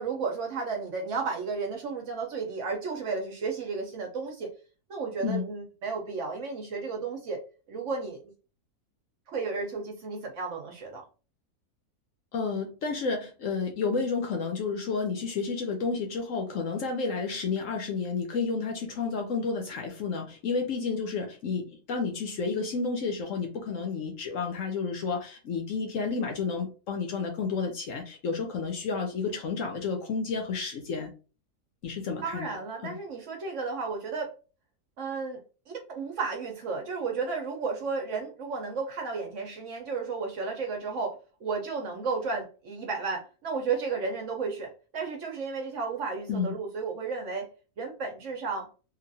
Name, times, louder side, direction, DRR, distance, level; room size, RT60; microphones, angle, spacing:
voice 1, 0.0-4.5 4.9-7.4 7.7-8.3 9.3-11.0 32.2-34.3 35.0-35.4 35.7-47.5 47.8-48.7, right 4 dB, 55° right, 2 dB, 1.0 m, -33 dB
voice 2, 12.3-31.1 31.8-32.6 32.8-33.0 46.3-46.6, left 4 dB, 65° left, 2 dB, 0.9 m, -31 dB
2.9 x 2.5 x 2.6 m, 0.34 s
omnidirectional pair, 1.7 m